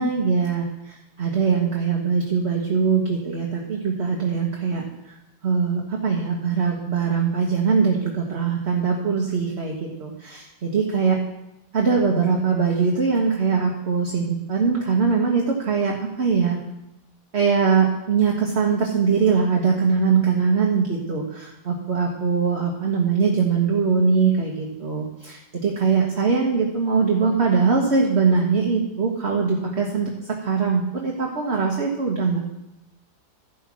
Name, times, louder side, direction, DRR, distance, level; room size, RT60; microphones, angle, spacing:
voice 1, 0.0-5.1 5.4-11.2 11.7-16.6 17.3-32.4, right 5 dB, 40° right, -1 dB, 1.5 m, -22 dB
14.5 x 5.5 x 6.1 m, 0.91 s
omnidirectional pair, 1.8 m